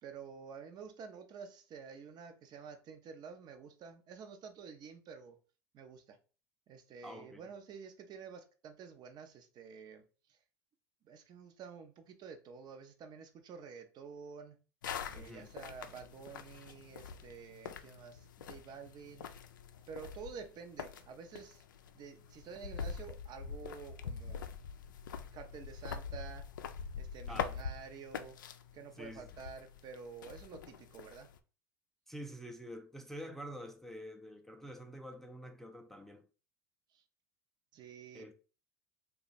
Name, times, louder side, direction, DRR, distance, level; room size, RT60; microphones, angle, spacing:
voice 1, 0.0-5.4 5.7-6.2 6.7-10.4 11.0-14.6 15.1-19.3 19.9-21.6 21.9-24.4 25.3-26.5 26.9-28.4 28.7-31.3 36.9-37.0 37.7-38.3, right 6 dB, 45° right, 0.7 m, -50 dB
voice 2, 7.0-7.4 15.1-15.5 27.3-27.6 29.0-29.3 32.1-36.3 38.1-38.3, equal, 5° left, 0.4 m, -47 dB
sound 1, 14.8-31.4, left 6 dB, 90° left, 0.4 m, -45 dB
2.9 x 2.3 x 4.1 m
hypercardioid pair, 95°, 10 cm